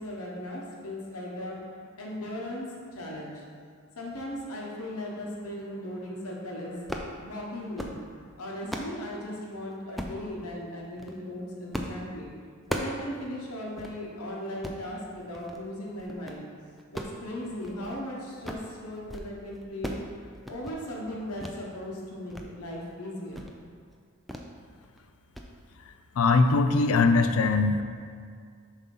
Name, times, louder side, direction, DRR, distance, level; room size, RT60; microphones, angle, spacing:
voice 1, 0.0-1.6 2.0-2.7 2.9-3.4 4.0-12.3 12.7-16.4 16.9-20.0 20.5-23.4, left 1 dB, 85° left, -3 dB, 1.1 m, -37 dB
sound 1, 6.9-7.1 7.6-8.0 8.4-9.0 10.0-10.2 10.8-11.2 11.7-12.0 12.3-13.0 13.4-13.5 13.8-13.9 14.5-14.8 15.3-15.6 16.0-16.4 16.8-18.0 18.3-18.7 19.0-19.3 19.5-20.1 20.4-20.8 21.4-21.6 22.0-22.5 22.8-22.9 23.3-23.6 24.3-24.5 24.8-25.0 25.3-25.5, equal, ahead, 0.3 m, -37 dB
voice 2, 26.2-27.8, left 3 dB, 70° left, 8 dB, 0.4 m, -21 dB
7.0 x 2.8 x 5.4 m, 2.1 s
head